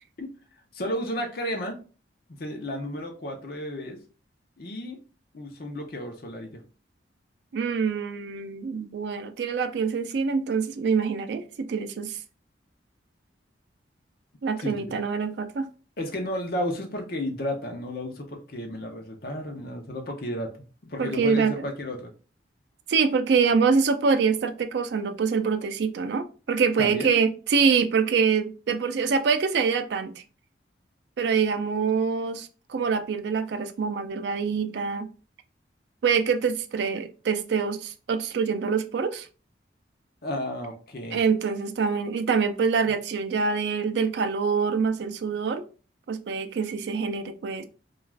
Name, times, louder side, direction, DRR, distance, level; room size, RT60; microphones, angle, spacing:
voice 1, 0.7-1.8 2.4-4.0 4.6-5.0 5.3-6.6 14.6-15.0 16.0-20.5 20.8-22.1 26.8-27.1 40.2-41.2, left 1 dB, 55° left, 0.6 m, -32 dB
voice 2, 7.5-11.4 11.7-12.2 14.4-15.7 21.0-21.5 22.9-30.1 31.2-35.1 36.0-39.3 41.1-45.6 46.1-47.6, right 5 dB, 65° right, 0.3 m, -25 dB
2.4 x 2.3 x 3.2 m
head